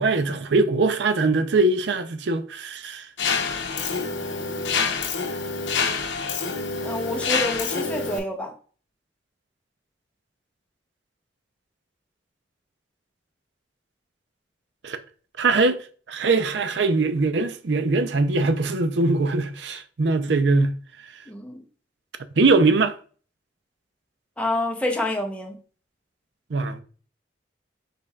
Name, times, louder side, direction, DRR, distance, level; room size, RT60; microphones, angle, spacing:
voice 1, 0.0-3.1 14.8-15.0 15.4-20.7 22.4-23.0 26.5-26.8, right 3 dB, 75° right, 0.5 m, -22 dB
Mechanisms, 3.2-8.2, left 5 dB, 75° left, 0.7 m, -27 dB
voice 2, 6.8-8.5 21.3-21.6 24.4-25.6, left 1 dB, 5° left, 0.7 m, -27 dB
5.2 x 4.2 x 2.3 m
head